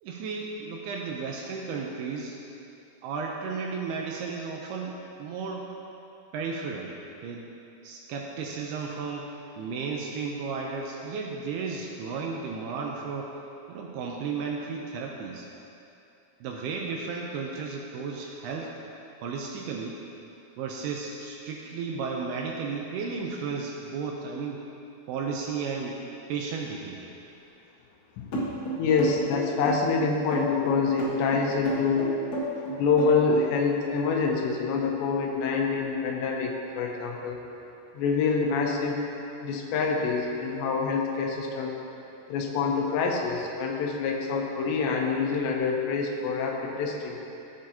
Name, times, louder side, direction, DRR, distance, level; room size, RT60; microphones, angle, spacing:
voice 1, 0.0-2.4 3.0-5.6 6.3-6.9 7.2-7.4 7.8-9.3 9.6-13.4 13.7-15.5 16.4-18.7 19.2-20.0 20.6-24.6 25.1-26.0 26.3-27.1, right 5 dB, 80° right, 0 dB, 2.4 m, -34 dB
sound 1, 28.3-33.5, right 1 dB, 50° left, 2.2 m, -31 dB
voice 2, 28.8-32.2 32.7-37.4 37.9-39.0 39.4-41.7 42.3-47.2, left 5 dB, 85° left, 1 dB, 3.0 m, -26 dB
14.5 x 7.5 x 2.9 m, 2.8 s
omnidirectional pair, 5.0 m